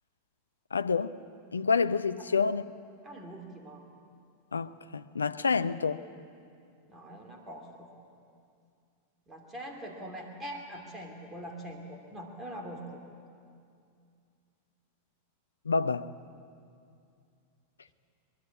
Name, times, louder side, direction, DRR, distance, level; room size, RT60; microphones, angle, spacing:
voice 1, 0.7-1.2 1.5-2.6 4.5-6.0 15.7-16.1, left 5 dB, 75° left, 0.6 m, -28 dB
voice 2, 3.0-3.8 6.9-7.9 9.3-12.8, right 1 dB, 15° right, 2.7 m, -43 dB
22.5 x 22.0 x 8.4 m
figure-of-eight pair, 90°, 0 cm